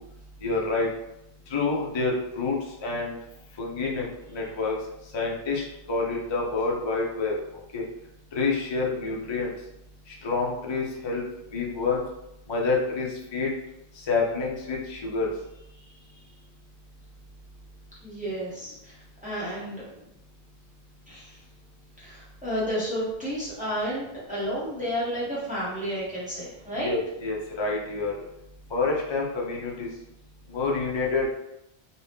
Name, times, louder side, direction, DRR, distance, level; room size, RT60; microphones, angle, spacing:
voice 1, 0.4-0.9 1.5-3.2 3.6-4.0 4.3-4.7 5.1-7.3 7.7-7.8 8.3-9.5 10.2-11.2 11.5-12.0 12.5-13.5 14.1-15.3 26.8-28.1 28.7-29.9 30.5-31.3, left 3 dB, 40° left, -2 dB, 0.4 m, -27 dB
voice 2, 15.8-16.1 18.0-19.9 21.1-21.4 22.0-26.9, equal, 10° right, -9 dB, 0.9 m, -32 dB
2.7 x 2.3 x 3.4 m, 0.86 s
omnidirectional pair, 1.1 m